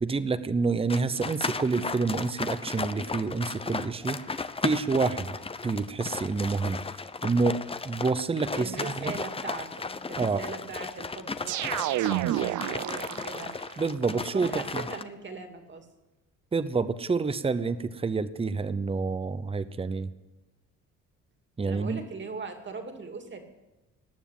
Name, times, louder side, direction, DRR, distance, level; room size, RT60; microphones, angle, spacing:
voice 1, 0.0-4.2 4.6-5.4 5.6-6.8 7.2-7.6 7.8-9.1 10.2-10.4 13.8-14.8 16.5-20.1 21.6-22.0, right 4 dB, 20° right, 14 dB, 0.8 m, -28 dB
sound 1, 0.9-15.0, left 4 dB, 20° left, 0.7 m, -35 dB
voice 2, 8.5-13.5 14.3-15.9 21.6-23.4, right 4 dB, 40° right, 5 dB, 2.6 m, -40 dB
sound 2, 11.5-13.7, right 14 dB, 75° right, 0.6 m, -29 dB
19.0 x 7.2 x 9.3 m, 1.0 s
cardioid pair, 90°, 30 cm